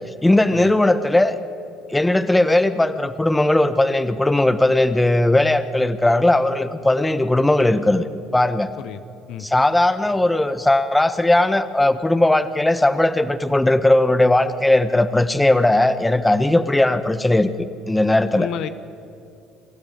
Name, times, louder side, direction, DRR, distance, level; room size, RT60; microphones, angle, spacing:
voice 1, 0.2-1.4 1.9-8.1 8.3-8.7 9.4-18.5, left 1 dB, 10° left, 11 dB, 1.3 m, -18 dB
voice 2, 18.3-18.7, left 10 dB, 65° left, 11 dB, 0.9 m, -30 dB
27.5 x 13.0 x 9.5 m, 2.6 s
supercardioid pair, 70°, 0 cm